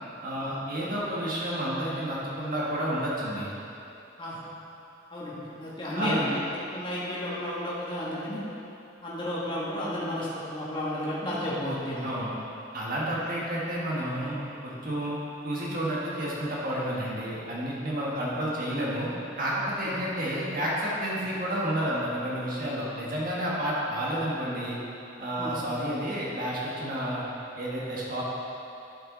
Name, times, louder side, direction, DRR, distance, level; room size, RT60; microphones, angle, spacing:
voice 1, 0.2-3.5 5.9-6.2 12.0-12.3 12.7-15.2 15.4-19.1 19.4-24.8 25.2-27.2 27.6-28.2, right 1 dB, 50° right, -6 dB, 1.5 m, -30 dB
voice 2, 5.1-6.3 6.7-8.4 9.0-12.1 13.2-13.3 18.1-18.2 19.8-20.0 25.4-25.5, left 1 dB, 25° left, -8 dB, 1.5 m, -32 dB
10.5 x 5.7 x 4.0 m, 2.8 s
head